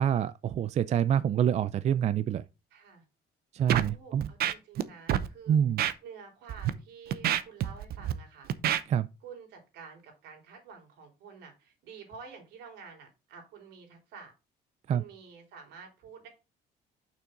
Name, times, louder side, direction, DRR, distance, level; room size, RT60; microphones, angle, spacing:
voice 1, 0.0-2.4 3.5-4.3 5.5-5.8 8.9-9.1 14.9-15.0, right 9 dB, 40° right, 0.4 m, -26 dB
voice 2, 2.7-3.0 3.8-5.6 6.0-8.5 9.2-14.3 14.9-16.3, right 6 dB, 80° right, 3.6 m, -49 dB
Scratching (performance technique), 3.7-3.9 4.2-4.8 5.1-5.3 5.8-5.9 6.5-6.7 7.1-8.1 8.5-8.8, right 11 dB, 65° right, 0.8 m, -27 dB
6.8 x 6.0 x 3.8 m
cardioid pair, 110°, 17 cm